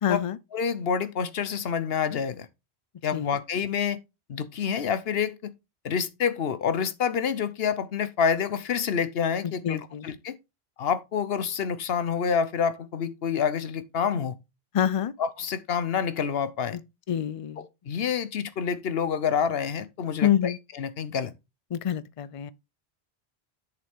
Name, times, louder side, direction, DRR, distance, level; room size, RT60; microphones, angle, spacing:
voice 1, 0.0-0.4 3.1-3.4 9.6-10.1 14.7-15.1 17.1-17.6 20.2-20.6 21.7-22.5, left 10 dB, 50° left, 0.4 m, -26 dB
voice 2, 0.5-2.5 3.0-4.0 4.3-5.5 5.8-10.4 10.8-14.4 15.2-16.8 17.6-21.3, left 7 dB, 70° left, 1.0 m, -28 dB
7.9 x 6.8 x 3.5 m
omnidirectional pair, 1.1 m